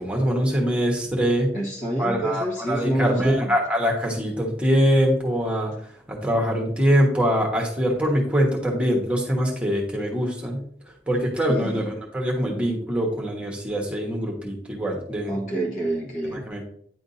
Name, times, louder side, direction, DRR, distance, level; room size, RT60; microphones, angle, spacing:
voice 1, 0.0-1.5 2.0-5.7 6.1-10.6 11.1-15.4 16.3-16.6, equal, 5° right, -1 dB, 1.2 m, -23 dB
voice 2, 1.5-3.5 11.5-11.9 15.3-16.5, right 1 dB, 45° left, -2 dB, 1.7 m, -27 dB
9.8 x 3.6 x 2.7 m, 0.62 s
head